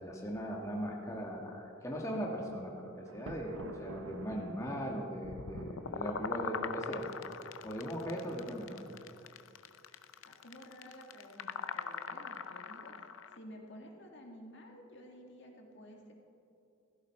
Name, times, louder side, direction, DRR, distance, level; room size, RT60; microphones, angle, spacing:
voice 1, 0.0-7.1 7.6-8.8, equal, 15° left, -1 dB, 1.4 m, -39 dB
Thunder, 3.0-7.2, right 2 dB, 80° right, 0.8 m, -49 dB
sound 1, 5.3-13.4, left 6 dB, 85° left, 0.6 m, -41 dB
voice 2, 10.2-16.1, equal, 65° left, 1 dB, 2.1 m, -52 dB
16.0 x 15.0 x 4.3 m, 2.6 s
head